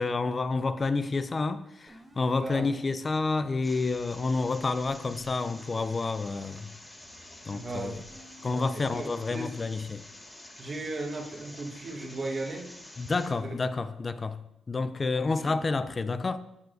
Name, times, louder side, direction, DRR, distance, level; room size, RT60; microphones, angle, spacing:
voice 1, 0.0-6.7 7.5-7.9 8.4-10.0 13.0-14.4 14.7-16.4, left 3 dB, 35° left, 0.4 m, -29 dB
sound 1, 1.9-2.7 3.6-6.1 7.0-8.7, right 1 dB, 25° right, 1.3 m, -55 dB
voice 2, 2.3-2.7 7.5-8.0 8.5-9.5 10.6-12.7 13.4-13.5 15.0-15.6, right 2 dB, 45° right, 1.3 m, -37 dB
sound 2, 3.6-13.3, left 1 dB, 15° left, 1.7 m, -49 dB
14.0 x 4.6 x 2.6 m
supercardioid pair, 70°, 0 cm